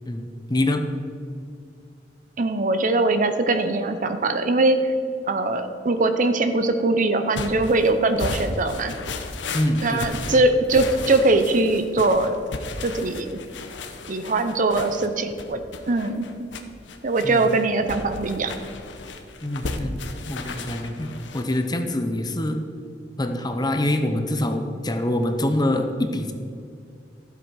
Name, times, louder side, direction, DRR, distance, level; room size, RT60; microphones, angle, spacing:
voice 1, 0.1-0.8 9.5-10.0 10.3-10.4 17.2-17.4 19.4-22.6 23.2-26.3, left 1 dB, 25° left, 6 dB, 0.8 m, -25 dB
voice 2, 2.4-4.8 5.3-8.9 9.8-12.4 12.8-13.4 14.1-15.6 15.9-16.5 17.0-18.5, right 2 dB, 45° right, 8 dB, 0.7 m, -21 dB
sound 1, 7.3-21.7, left 3 dB, 80° left, 0.9 m, -35 dB
13.0 x 7.8 x 4.8 m, 2.3 s
head